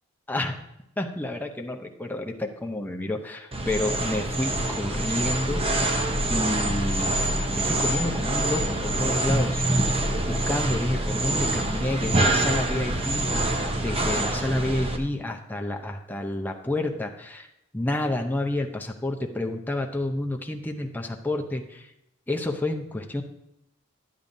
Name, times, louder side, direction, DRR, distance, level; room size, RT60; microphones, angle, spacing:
voice 1, 1.0-5.7 6.3-9.6 10.2-17.5 17.7-21.9 22.3-23.2, left 1 dB, 10° left, 2 dB, 0.7 m, -29 dB
sound 1, 3.5-15.0, right 1 dB, 25° right, 0.7 m, -25 dB
11.0 x 8.8 x 2.7 m, 0.84 s
head